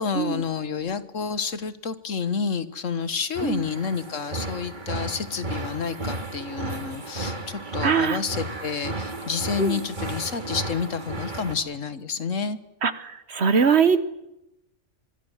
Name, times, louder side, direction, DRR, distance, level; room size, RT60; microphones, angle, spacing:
voice 1, 0.0-12.6, left 6 dB, 85° left, 13 dB, 1.8 m, -29 dB
sound 1, 3.4-11.6, right 2 dB, 40° right, 2.4 m, -33 dB
voice 2, 7.8-8.2 9.6-9.8 12.8-14.0, right 6 dB, 60° right, 13 dB, 1.6 m, -22 dB
24.5 x 24.5 x 7.4 m, 0.87 s
omnidirectional pair, 1.3 m